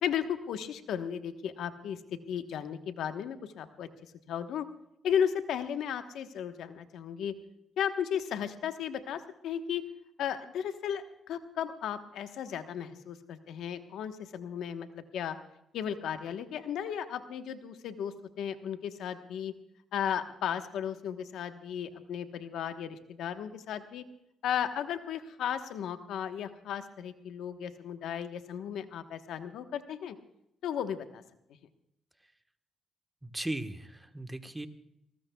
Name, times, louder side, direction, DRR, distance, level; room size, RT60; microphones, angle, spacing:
voice 1, 0.0-3.9 4.3-4.7 5.0-7.3 7.8-9.8 10.2-15.4 15.7-19.5 19.9-24.0 24.4-30.2 30.6-31.2, left 8 dB, 80° left, 8 dB, 1.2 m, -35 dB
voice 2, 33.2-34.7, right 1 dB, 10° right, 8 dB, 1.3 m, -37 dB
22.5 x 19.5 x 2.3 m, 0.80 s
cardioid pair, 90°, 0 cm